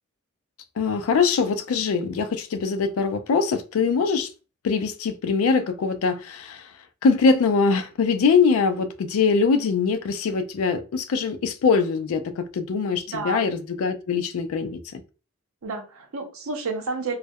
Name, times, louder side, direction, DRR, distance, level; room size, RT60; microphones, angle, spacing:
voice 1, 0.8-4.3 4.6-6.7 7.0-15.0, left 5 dB, 80° left, 0.4 m, -22 dB
voice 2, 13.1-13.5 15.6-17.2, right 3 dB, 80° right, 0.6 m, -30 dB
2.3 x 2.1 x 2.6 m
head